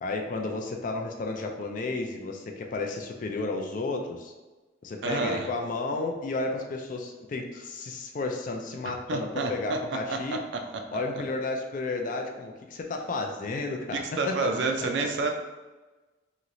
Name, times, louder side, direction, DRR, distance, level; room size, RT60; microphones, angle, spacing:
voice 1, 0.0-4.3 4.8-10.4 10.9-15.1, left 3 dB, 40° left, 3 dB, 0.3 m, -32 dB
voice 2, 5.0-5.5 9.1-9.8 10.1-10.2 10.5-10.6 13.9-15.3, right 3 dB, 65° right, 4 dB, 0.4 m, -28 dB
3.0 x 2.8 x 2.5 m, 1.2 s
head